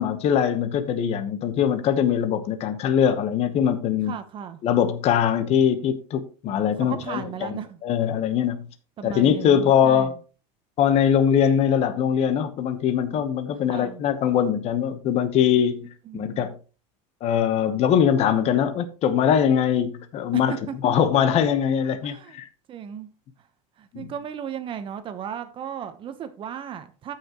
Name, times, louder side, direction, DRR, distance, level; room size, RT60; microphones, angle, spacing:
voice 1, 0.0-4.1 4.6-7.5 7.8-8.6 9.0-10.1 10.8-16.5 17.2-20.6 20.8-22.5 23.9-24.1, left 8 dB, 40° left, 1.1 m, -22 dB
voice 2, 4.1-4.6 6.8-7.8 9.0-10.2 13.7-14.0 16.0-16.4 20.3-20.7 22.0-22.4 22.7-23.1 23.8-27.1, right 8 dB, 30° right, 1.0 m, -35 dB
14.0 x 5.8 x 3.0 m
supercardioid pair, 150°, 17 cm